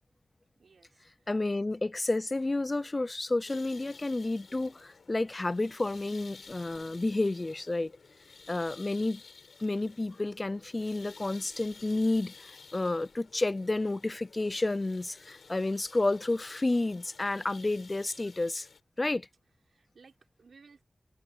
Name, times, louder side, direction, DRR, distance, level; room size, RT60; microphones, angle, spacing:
voice 1, 0.6-1.3 8.4-8.5 19.7-20.8, right 5 dB, 85° right, 4.5 m, -59 dB
voice 2, 1.3-7.9 8.5-9.2 9.6-18.7 19.0-19.3, left 2 dB, 30° left, 0.4 m, -30 dB
sound 1, 3.4-18.8, left 4 dB, 85° left, 4.2 m, -53 dB
wide cardioid pair, 95°, 0 cm